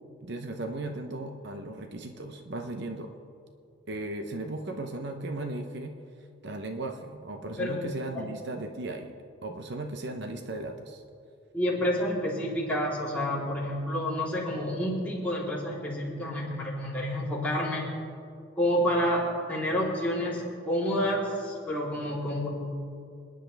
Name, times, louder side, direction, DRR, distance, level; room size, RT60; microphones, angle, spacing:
voice 1, 0.2-3.1 3.9-5.9 6.4-9.1 9.4-11.0, right 2 dB, 55° right, 5 dB, 0.8 m, -36 dB
voice 2, 7.6-7.9 8.2-8.3 11.5-17.8 18.6-22.5, equal, 5° left, -7 dB, 3.5 m, -29 dB
28.0 x 10.5 x 3.4 m, 2.4 s
head